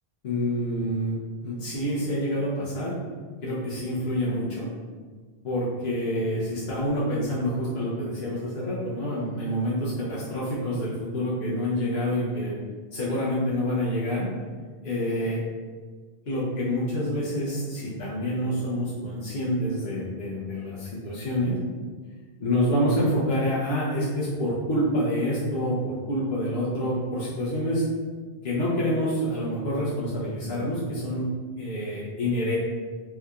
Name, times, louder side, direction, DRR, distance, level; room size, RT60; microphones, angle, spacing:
voice 1, 0.2-2.9 3.4-4.7 5.4-12.6 12.9-14.3 14.8-15.4 16.3-21.6 22.4-27.9 28.4-31.3 31.6-32.5, equal, 75° left, -8 dB, 1.0 m, -27 dB
3.4 x 2.8 x 2.3 m, 1.5 s
omnidirectional pair, 1.0 m